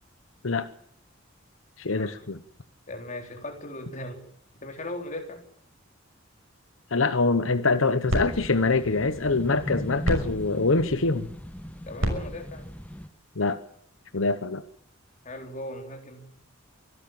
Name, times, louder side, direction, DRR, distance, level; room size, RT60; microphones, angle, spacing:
voice 1, 1.8-2.4 6.9-11.3 13.4-13.6 14.1-14.6, left 3 dB, 80° left, 11 dB, 1.1 m, -24 dB
voice 2, 2.9-4.2 4.6-5.4 11.9-12.7 15.2-16.3, left 1 dB, 40° left, 4 dB, 3.9 m, -38 dB
sound 1, 7.5-13.9, right 1 dB, 85° right, 6.1 m, -35 dB
sound 2, 8.1-13.1, equal, 5° left, 0.8 m, -38 dB
24.5 x 12.5 x 9.1 m, 0.67 s
head